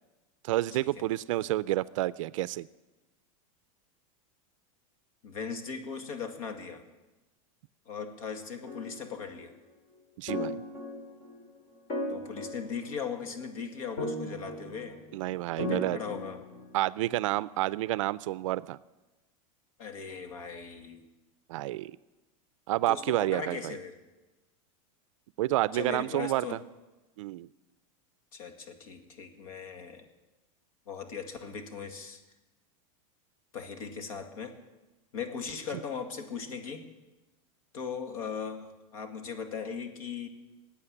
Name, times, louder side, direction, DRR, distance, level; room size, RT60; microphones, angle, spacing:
voice 1, 0.4-2.7 10.2-10.6 15.1-16.0 16.7-18.8 21.5-21.9 22.7-23.8 25.4-26.6 27.2-27.5, right 16 dB, 65° right, 18 dB, 0.4 m, -29 dB
voice 2, 5.2-6.8 7.9-9.5 12.1-15.0 15.6-16.4 19.8-21.0 22.9-24.0 25.7-26.6 28.3-30.1 30.9-32.2 33.5-34.5 35.1-36.8 37.7-40.3, left 6 dB, 80° left, 6 dB, 2.1 m, -38 dB
sound 1, 8.7-9.2 10.3-11.3 11.9-13.3 14.0-15.0 15.6-16.7, left 1 dB, 35° left, 3.4 m, -37 dB
15.5 x 8.5 x 10.0 m, 1.1 s
supercardioid pair, 175°, 18 cm